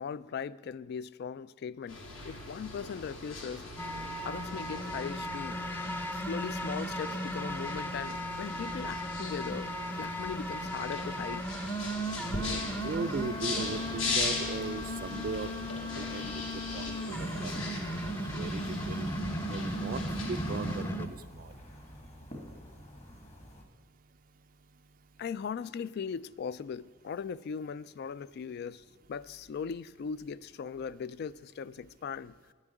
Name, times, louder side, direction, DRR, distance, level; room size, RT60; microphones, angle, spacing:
voice 1, 0.0-3.7 4.2-5.6 6.1-9.7 10.0-11.5 25.2-32.3, left 6 dB, 50° left, 0.3 m, -39 dB
sound 1, 1.9-20.8, left 3 dB, 70° left, 2.3 m, -40 dB
sound 2, 3.8-21.1, equal, 10° left, 0.6 m, -36 dB
voice 2, 12.1-16.4 16.7-17.5 18.1-19.1 19.5-21.1 21.3-21.5, right 4 dB, 45° right, 0.4 m, -38 dB
sound 3, 13.1-23.6, equal, 30° left, 1.5 m, -49 dB
9.8 x 7.3 x 9.1 m
head